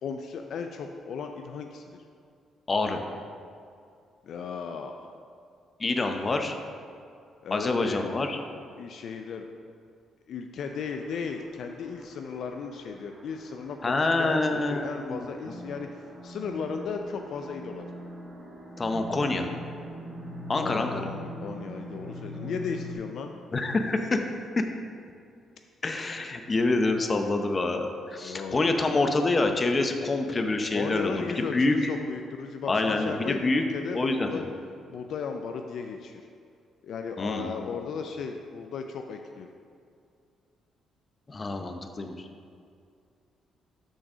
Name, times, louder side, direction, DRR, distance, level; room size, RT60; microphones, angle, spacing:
voice 1, 0.0-2.0 4.2-5.0 7.4-8.1 8.8-9.5 10.3-15.9 16.2-17.8 20.5-23.3 28.2-29.0 30.7-34.5 34.9-36.3 36.8-39.5, left 5 dB, 70° left, 5 dB, 0.4 m, -36 dB
voice 2, 2.7-3.0 5.8-6.6 7.5-8.4 13.8-15.2 15.5-15.6 18.8-19.5 20.5-21.1 23.5-24.2 24.6-24.7 25.8-31.1 31.4-31.8 32.7-33.6 33.9-34.4 37.2-37.7 41.3-42.1, left 2 dB, 30° left, 5 dB, 0.6 m, -26 dB
sound 1, 10.6-23.0, equal, 35° right, 1.7 m, -43 dB
6.3 x 4.0 x 6.0 m, 2.4 s
cardioid pair, 90°, 0 cm